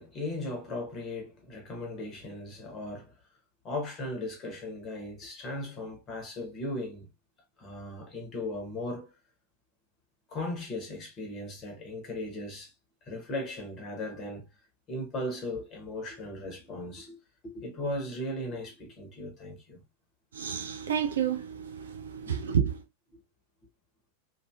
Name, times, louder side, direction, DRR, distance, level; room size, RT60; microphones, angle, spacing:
voice 1, 0.0-3.1 3.6-7.1 7.6-9.1 10.3-12.7 13.1-14.5 14.9-19.8 22.2-22.3, left 1 dB, 30° left, 1.1 m, -37 dB
voice 2, 20.3-22.8, right 8 dB, 65° right, 0.4 m, -30 dB
2.8 x 2.6 x 2.3 m
figure-of-eight pair, 90°, 0 cm